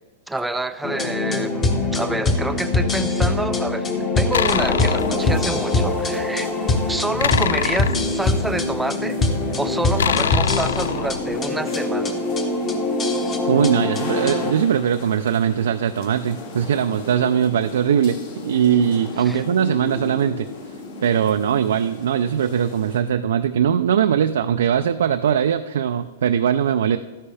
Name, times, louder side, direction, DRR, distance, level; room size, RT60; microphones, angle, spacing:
voice 1, 0.3-3.9 4.1-6.5 6.9-9.2 9.6-12.2 19.2-19.4, right 2 dB, 5° right, 11 dB, 0.3 m, -28 dB
sound 1, 0.8-14.5, left 2 dB, 20° left, 1.2 m, -23 dB
sound 2, 4.3-5.2 7.2-8.7 10.0-11.4, left 8 dB, 85° left, 0.3 m, -24 dB
sound 3, 4.5-23.0, left 2 dB, 55° left, 2.4 m, -35 dB
voice 2, 13.5-20.5 21.0-27.0, right 8 dB, 80° right, 7 dB, 0.4 m, -20 dB
12.5 x 10.0 x 3.4 m, 1.3 s
hypercardioid pair, 150°, 0 cm